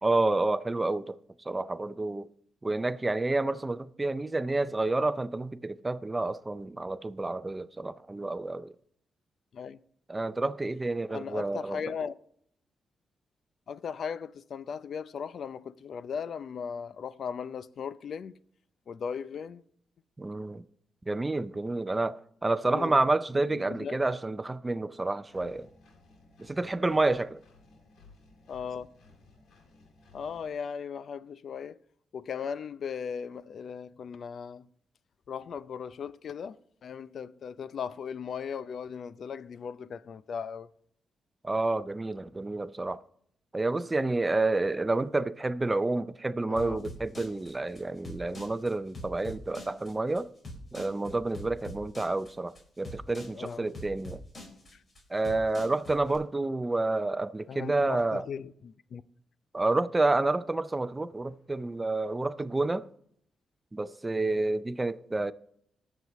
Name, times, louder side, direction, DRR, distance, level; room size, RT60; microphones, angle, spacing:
voice 1, 0.0-1.2 1.4-2.3 2.6-8.7 10.1-11.8 20.2-20.6 21.1-25.7 26.4-27.4 41.4-43.0 43.5-50.3 50.7-54.2 55.1-58.2 59.5-62.9 63.7-65.3, right 2 dB, 20° right, 0.5 m, -29 dB
voice 2, 11.1-12.2 13.7-18.4 18.9-19.6 22.6-23.0 23.4-24.0 28.5-28.9 30.1-31.8 32.1-34.7 35.3-40.7 46.5-46.9 53.3-53.7 54.7-54.8 57.5-59.0, left 6 dB, 65° left, 0.5 m, -38 dB
Engine, 25.3-30.5, left 3 dB, 85° left, 2.1 m, -58 dB
sound 1, 46.6-56.2, left 1 dB, 40° left, 4.7 m, -44 dB
19.5 x 7.3 x 3.1 m
cardioid pair, 90°, 0 cm